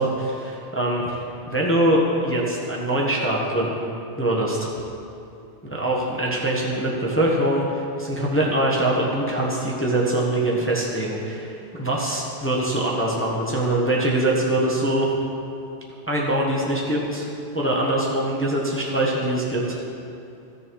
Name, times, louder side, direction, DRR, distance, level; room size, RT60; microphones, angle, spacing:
voice 1, 0.0-3.9 4.2-4.7 5.7-15.1 16.1-17.3 17.5-19.8, right 1 dB, 15° left, -4 dB, 0.5 m, -23 dB
13.0 x 6.8 x 4.7 m, 2.6 s
omnidirectional pair, 2.3 m